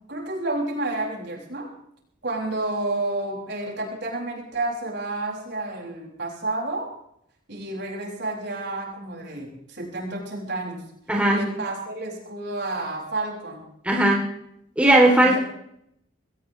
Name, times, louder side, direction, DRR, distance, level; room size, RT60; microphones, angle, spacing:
voice 1, 0.1-1.7 2.2-6.9 7.5-10.9 11.2-13.7 15.2-15.4, right 2 dB, 65° right, -1 dB, 6.3 m, -30 dB
voice 2, 11.1-11.4 13.8-14.2 14.8-15.4, right 1 dB, 5° right, -2 dB, 3.0 m, -17 dB
21.0 x 18.5 x 3.2 m, 0.73 s
head